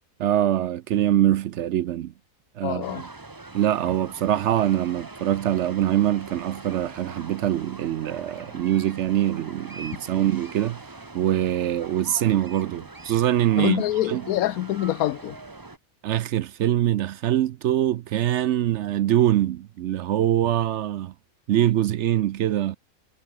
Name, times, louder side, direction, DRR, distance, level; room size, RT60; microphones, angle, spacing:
voice 1, 0.2-2.1 2.6-3.1 3.5-10.8 11.1-14.2 16.0-21.1 21.5-22.8, right 12 dB, 65° right, 0.8 m, -23 dB
voice 2, 2.6-3.0 13.6-15.4, left 13 dB, 90° left, 1.1 m, -25 dB
sound 1, 2.8-15.8, right 3 dB, 15° right, 0.9 m, -43 dB
omnidirectional pair, 1.5 m